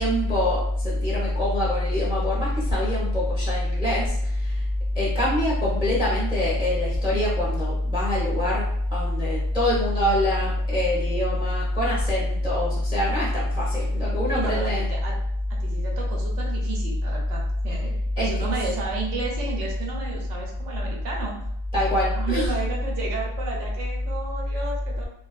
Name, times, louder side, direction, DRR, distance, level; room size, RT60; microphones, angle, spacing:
voice 1, 0.0-4.6 4.9-14.9 18.2-18.5 21.7-22.5, left 1 dB, 5° right, -7 dB, 0.5 m, -23 dB
voice 2, 14.3-15.1 15.6-21.5 22.1-25.1, right 3 dB, 65° right, -1 dB, 0.9 m, -33 dB
2.5 x 2.3 x 2.3 m, 0.72 s
omnidirectional pair, 1.5 m